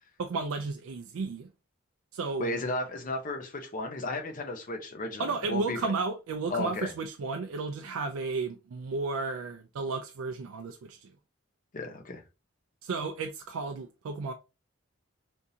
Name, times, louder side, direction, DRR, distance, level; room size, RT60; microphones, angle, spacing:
voice 1, 0.2-1.5 2.1-2.6 5.2-11.1 12.8-14.3, right 4 dB, 85° right, 0.4 m, -33 dB
voice 2, 2.4-5.8 6.5-6.9 11.7-12.2, left 2 dB, 40° left, 0.7 m, -34 dB
3.5 x 2.6 x 2.7 m
head